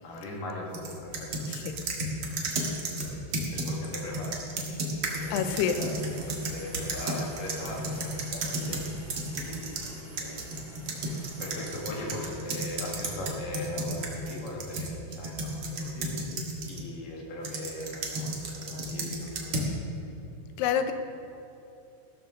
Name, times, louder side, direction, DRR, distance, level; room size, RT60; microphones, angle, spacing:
voice 1, 0.0-8.9 9.4-10.6 10.8-16.1 16.7-19.8, left 1 dB, 55° left, -3 dB, 3.4 m, -40 dB
sound 1, 0.7-9.9 10.2-16.8 17.4-19.7, right 2 dB, 60° right, 1.5 m, -33 dB
voice 2, 1.5-2.2 5.3-5.9 20.6-20.9, left 8 dB, 80° left, 8 dB, 2.8 m, -29 dB
Subway metro underground, 5.0-14.5, equal, 40° left, 2.9 m, -47 dB
16.5 x 7.1 x 6.4 m, 2.8 s
omnidirectional pair, 4.8 m